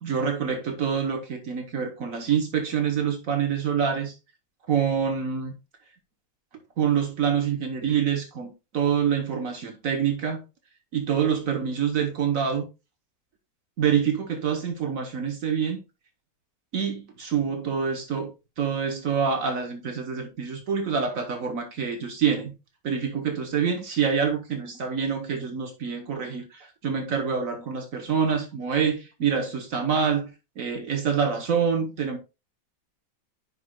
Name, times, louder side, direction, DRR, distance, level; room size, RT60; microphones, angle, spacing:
voice 1, 0.0-4.1 4.7-5.5 6.8-10.4 10.9-12.6 13.8-15.8 16.7-22.5 22.8-30.3 30.6-32.2, right 7 dB, 65° right, 1.4 m, -26 dB
9.9 x 5.9 x 2.2 m
omnidirectional pair, 1.6 m